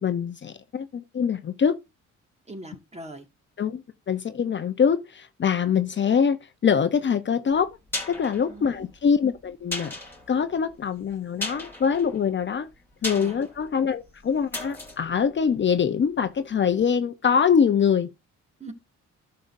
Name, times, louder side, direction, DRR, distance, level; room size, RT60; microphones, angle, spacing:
voice 1, 0.0-1.8 3.6-6.4 6.6-7.8 8.1-9.9 10.3-12.7 13.0-18.1, left 7 dB, 40° left, 0.7 m, -24 dB
voice 2, 2.5-3.3 8.5-8.9 13.2-13.4 18.6-18.7, right 1 dB, 20° right, 1.9 m, -40 dB
sound 1, 7.5-16.4 16.7-16.8, left 2 dB, 5° left, 3.4 m, -38 dB
12.0 x 6.6 x 2.6 m
cardioid pair, 90°, 30 cm